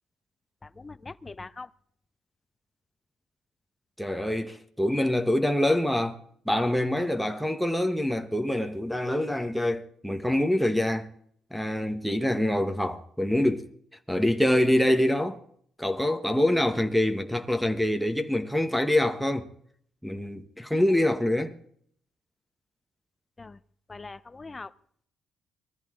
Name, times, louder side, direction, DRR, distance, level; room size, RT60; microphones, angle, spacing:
voice 1, 0.6-1.7 23.4-23.6 23.9-24.7, left 3 dB, 25° left, 0.7 m, -42 dB
voice 2, 4.0-6.2 6.5-11.1 11.5-13.6 14.1-15.4 15.8-19.5 20.0-21.5, left 1 dB, ahead, 1.3 m, -25 dB
21.0 x 14.0 x 3.8 m
cardioid pair, 90°, 0 cm